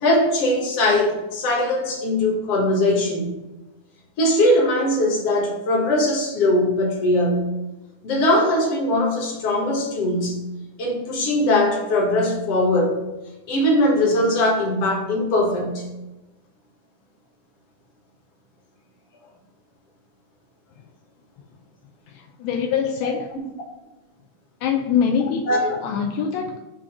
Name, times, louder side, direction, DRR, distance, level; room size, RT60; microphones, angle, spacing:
voice 1, 0.0-3.3 4.2-7.5 8.0-10.4 10.8-13.0 13.5-15.9 25.5-25.8, left 1 dB, 55° left, -1 dB, 2.2 m, -20 dB
voice 2, 22.1-23.3 24.6-26.6, left 7 dB, 80° left, 2 dB, 1.6 m, -24 dB
7.5 x 2.9 x 5.9 m, 1.0 s
omnidirectional pair, 3.5 m